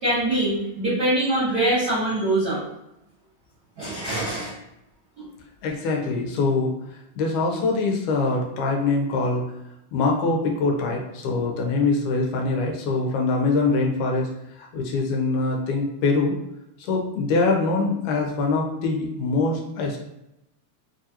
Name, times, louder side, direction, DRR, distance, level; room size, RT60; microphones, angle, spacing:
voice 1, 0.0-2.6 3.8-4.5 5.2-5.3, right 1 dB, 75° right, -8 dB, 0.9 m, -23 dB
voice 2, 5.6-9.4 9.9-14.3 14.5-16.4 16.8-20.0, left 3 dB, 85° left, 1 dB, 2.1 m, -23 dB
4.6 x 2.4 x 2.8 m, 0.87 s
omnidirectional pair, 3.4 m